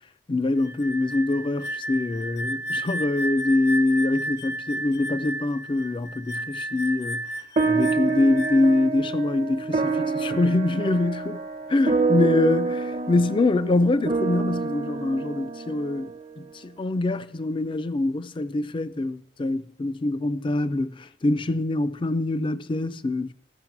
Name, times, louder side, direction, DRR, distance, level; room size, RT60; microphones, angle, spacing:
voice 1, 0.3-11.4 11.7-23.3, left 2 dB, 25° left, 0.4 m, -24 dB
sound 1, 0.6-8.8, right 1 dB, 65° left, 0.7 m, -33 dB
sound 2, 7.6-16.2, right 4 dB, 35° right, 0.6 m, -27 dB
14.5 x 6.4 x 5.9 m
head